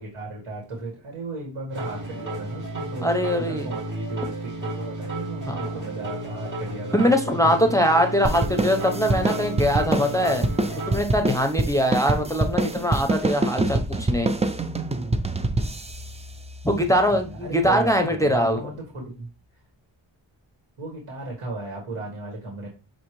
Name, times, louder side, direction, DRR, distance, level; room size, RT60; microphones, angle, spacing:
voice 1, 0.0-7.6 17.1-19.3 20.8-22.7, right 2 dB, 80° right, 1.8 m, -35 dB
sound 1, 1.7-11.0, right 1 dB, 35° right, 2.4 m, -33 dB
voice 2, 3.0-3.7 5.5-5.8 6.9-10.4 10.9-14.3 16.6-18.6, equal, 5° left, 0.7 m, -22 dB
sound 2, 8.2-17.1, right 2 dB, 15° right, 0.4 m, -26 dB
6.2 x 2.7 x 3.1 m
wide cardioid pair, 75°, 49 cm